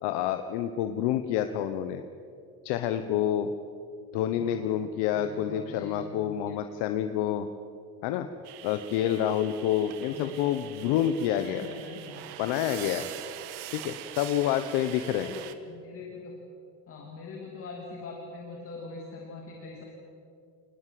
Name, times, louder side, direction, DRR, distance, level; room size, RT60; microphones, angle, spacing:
voice 1, 0.0-2.0 2.6-3.5 4.1-7.5 8.0-8.3 8.6-11.7 12.4-13.1 13.7-15.3, left 10 dB, 85° left, 8 dB, 1.2 m, -28 dB
voice 2, 4.3-4.6 5.1-6.6 10.1-10.6 10.8-11.0 11.3-12.2 13.9-14.2 15.2-16.4 16.9-19.8, left 3 dB, 35° left, 0 dB, 3.0 m, -43 dB
sound 1, 8.4-15.5, right 12 dB, 75° right, 1.6 m, -43 dB
27.5 x 20.0 x 7.8 m, 2.4 s
cardioid pair, 180°, 40 cm